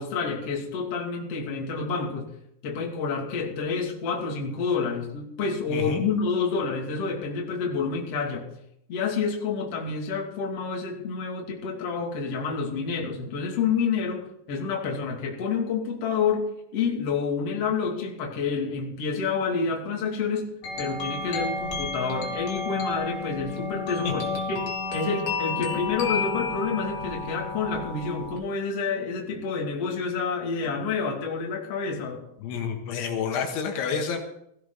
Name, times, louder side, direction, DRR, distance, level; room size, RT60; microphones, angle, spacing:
voice 1, 0.0-2.3 2.6-8.4 8.9-16.4 16.7-20.5 20.8-24.7 24.9-32.3, left 5 dB, 40° left, 0 dB, 2.9 m, -28 dB
voice 2, 5.7-6.1 24.0-24.1 32.4-34.2, left 6 dB, 75° left, 3 dB, 3.8 m, -29 dB
sound 1, 20.6-28.4, left 3 dB, 55° left, 4.0 m, -31 dB
16.5 x 16.5 x 4.0 m, 0.76 s
omnidirectional pair, 5.5 m